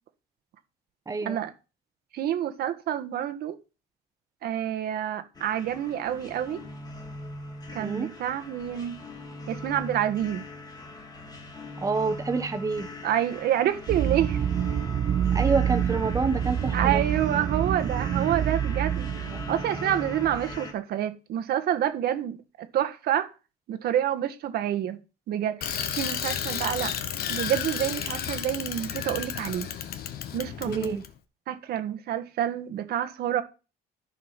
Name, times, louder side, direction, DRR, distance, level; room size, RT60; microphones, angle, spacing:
voice 1, 1.1-1.4 7.8-8.1 11.8-12.9 15.3-17.0 19.3-19.4 30.6-31.0, right 4 dB, 20° right, 1.4 m, -28 dB
voice 2, 2.1-3.6 4.4-6.6 7.7-9.0 9.5-10.4 13.0-14.4 16.7-23.3 23.7-25.0 25.3-26.9 27.3-29.7 30.3-31.0 31.5-33.4, right 11 dB, 70° right, 1.5 m, -28 dB
sound 1, 5.3-20.7, left 2 dB, 25° left, 2.6 m, -41 dB
sound 2, 13.9-20.6, right 9 dB, 45° right, 0.6 m, -27 dB
Bicycle, 25.6-31.1, left 9 dB, 65° left, 1.4 m, -32 dB
13.5 x 5.0 x 5.9 m
cardioid pair, 110°, 17 cm